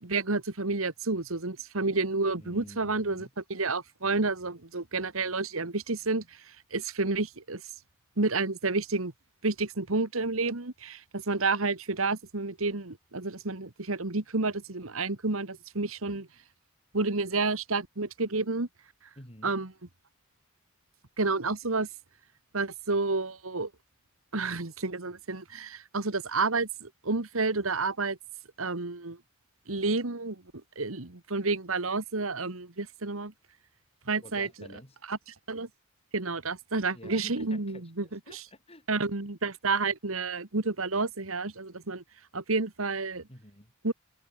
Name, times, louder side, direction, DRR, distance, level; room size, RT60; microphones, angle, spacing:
voice 1, 0.0-7.6 8.2-9.1 9.4-16.3 16.9-18.7 19.4-19.7 21.2-21.9 22.5-23.7 24.3-28.2 28.6-29.2 29.7-30.4 30.8-33.3 34.1-34.5 35.1-35.2 35.5-35.7 36.1-38.4 38.9-42.0 42.3-43.3 43.8-43.9, right 3 dB, 70° right, 1.9 m, -30 dB
voice 2, 2.4-3.3 19.2-19.6 34.2-35.0 36.9-38.9 43.3-43.7, left 1 dB, 30° left, 7.2 m, -50 dB
head